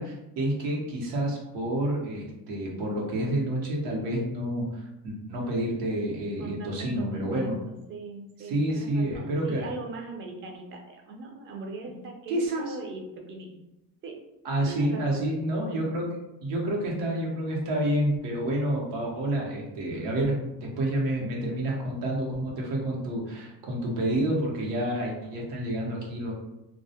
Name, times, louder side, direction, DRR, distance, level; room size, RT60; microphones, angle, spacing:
voice 1, 0.0-7.6 8.4-9.7 12.3-12.8 14.4-16.2 16.4-26.3, right 1 dB, 90° right, -2 dB, 0.9 m, -29 dB
voice 2, 6.4-13.6 14.0-14.2 14.7-15.2, right 3 dB, 30° right, 2 dB, 0.4 m, -40 dB
2.2 x 2.1 x 2.7 m, 0.93 s
cardioid pair, 115°, 41 cm